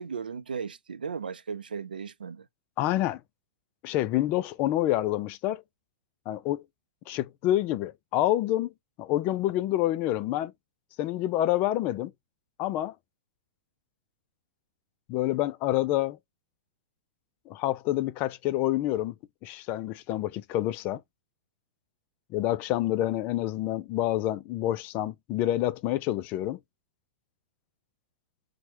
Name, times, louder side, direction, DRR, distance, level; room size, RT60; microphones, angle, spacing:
voice 1, 0.0-2.5, right 6 dB, 85° right, 0.5 m, -36 dB
voice 2, 2.8-3.2 3.8-5.6 6.3-6.6 7.1-8.7 9.0-10.5 11.0-12.1 12.6-12.9 15.1-16.2 17.5-19.1 19.4-21.0 22.3-26.6, left 14 dB, 40° left, 0.4 m, -27 dB
4.4 x 2.2 x 2.8 m
hypercardioid pair, 110°, 5 cm